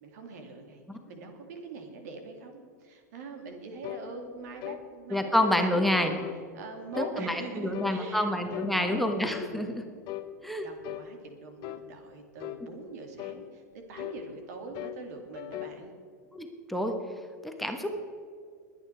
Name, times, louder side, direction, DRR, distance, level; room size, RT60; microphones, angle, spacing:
voice 1, 0.0-6.2 6.5-9.0 9.3-9.8 10.6-13.6 13.9-15.9, right 4 dB, 65° right, 5 dB, 2.5 m, -43 dB
sound 1, 3.8-4.1 4.6-4.8 5.4-5.6 6.2-6.4 6.9-7.2 7.7-8.0 8.5-8.8 9.3-9.5 10.1-10.3 10.8-11.1 11.6-11.9 12.4-12.6 13.2-13.4 14.0-14.2 14.7-15.0 15.3-15.8, left 16 dB, 45° left, 0.8 m, -38 dB
voice 2, 5.1-6.1 7.2-9.7 10.4-10.7 16.3-16.9 17.4-17.9, left 1 dB, ahead, 3 dB, 1.3 m, -28 dB
22.0 x 9.1 x 4.6 m, 2.2 s
hypercardioid pair, 100°, 9 cm